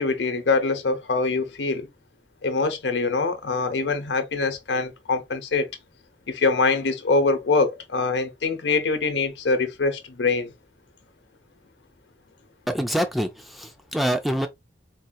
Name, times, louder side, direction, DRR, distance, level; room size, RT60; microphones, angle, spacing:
voice 1, 0.0-1.9 2.4-5.7 6.3-10.5, left 3 dB, 80° left, 0.8 m, -24 dB
voice 2, 12.7-14.5, equal, ahead, 0.4 m, -25 dB
4.2 x 2.7 x 2.2 m
head